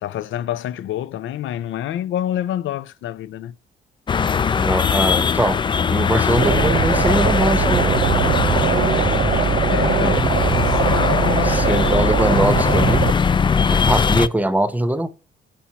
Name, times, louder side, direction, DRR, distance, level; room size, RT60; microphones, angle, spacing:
voice 1, 0.0-3.5 9.7-10.3 10.6-12.1, left 11 dB, 75° left, 0.6 m, -27 dB
sound 1, 4.1-14.3, left 6 dB, 25° left, 0.3 m, -20 dB
voice 2, 4.5-5.6 5.9-8.0 11.4-13.1 13.7-15.1, right 1 dB, 10° right, 0.9 m, -22 dB
sound 2, 6.4-13.1, right 7 dB, 45° right, 0.8 m, -21 dB
8.6 x 4.4 x 5.5 m
cardioid pair, 90°, 20 cm